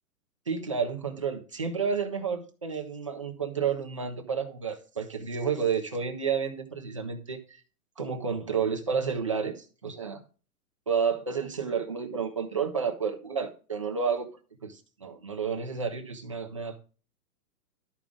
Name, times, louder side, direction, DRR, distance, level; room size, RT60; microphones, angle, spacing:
voice 1, 0.5-7.6 8.0-10.2 10.9-14.3 14.6-16.8, right 6 dB, 20° right, 3 dB, 0.5 m, -31 dB
12.5 x 5.1 x 3.5 m, 0.37 s
hypercardioid pair, 170°, 48 cm